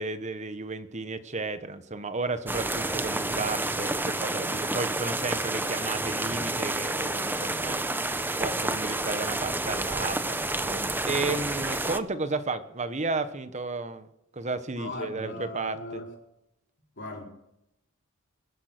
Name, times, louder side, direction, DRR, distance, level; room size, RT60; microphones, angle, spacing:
voice 1, 0.0-14.1 14.3-16.0, right 3 dB, 35° right, 1.1 m, -33 dB
sound 1, 2.5-12.0, right 2 dB, 10° right, 0.7 m, -29 dB
voice 2, 14.7-16.0 17.0-17.2, left 2 dB, 55° left, 4.3 m, -38 dB
21.0 x 10.5 x 6.6 m
head